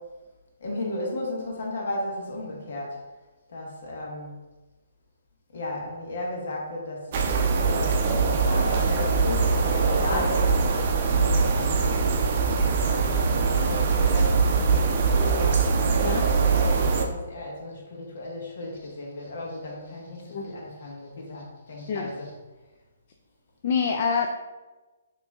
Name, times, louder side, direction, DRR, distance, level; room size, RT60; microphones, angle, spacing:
voice 1, 0.6-3.0 3.5-4.3 5.5-7.1 7.5-10.5 11.1-11.8 12.8-15.6 16.4-22.4, left 1 dB, 65° left, -2 dB, 1.3 m, -34 dB
sound 1, 7.1-17.1, right 4 dB, 40° right, 0.5 m, -22 dB
voice 2, 23.6-24.3, left 5 dB, 45° left, 2 dB, 0.4 m, -26 dB
5.9 x 3.0 x 2.4 m, 1.2 s
hypercardioid pair, 155°, 0 cm